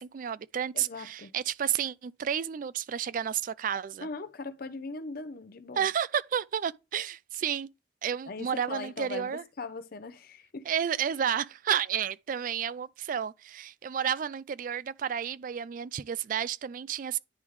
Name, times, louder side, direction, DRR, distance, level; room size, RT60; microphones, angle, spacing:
voice 1, 0.0-4.1 5.8-7.7 8.0-9.4 10.7-17.2, right 8 dB, 45° right, 0.3 m, -31 dB
voice 2, 0.7-1.3 4.0-5.9 8.3-10.7, left 3 dB, 55° left, 0.6 m, -40 dB
10.0 x 3.5 x 3.1 m
head